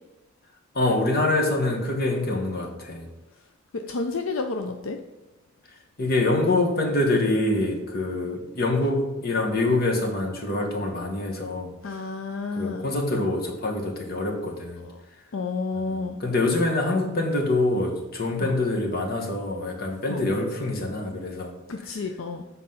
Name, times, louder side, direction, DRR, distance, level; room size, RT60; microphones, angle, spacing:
voice 1, 0.7-3.1 6.0-11.7 12.5-14.8 15.8-21.5, left 2 dB, 50° left, 2 dB, 1.3 m, -25 dB
voice 2, 3.7-5.0 11.8-12.9 14.8-15.0 15.3-16.2 18.4-18.5 20.1-20.3 21.7-22.4, left 3 dB, 75° left, 5 dB, 0.5 m, -30 dB
7.7 x 4.1 x 5.6 m, 1.1 s
head